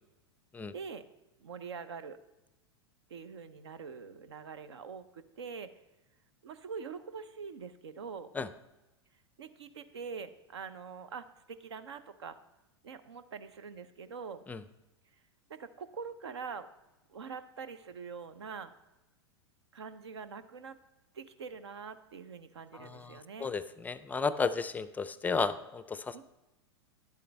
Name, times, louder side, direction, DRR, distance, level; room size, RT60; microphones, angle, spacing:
voice 1, 0.7-1.0 1.4-2.2 3.1-5.7 6.4-8.3 9.4-12.4 12.8-14.4 15.5-16.7 17.1-18.7 19.7-20.8 21.1-23.5 26.1-26.2, right 5 dB, 75° right, 13 dB, 0.7 m, -44 dB
voice 2, 22.7-26.2, left 4 dB, 10° left, 14 dB, 0.4 m, -33 dB
11.0 x 8.4 x 3.4 m, 1.0 s
hypercardioid pair, 100°, 14 cm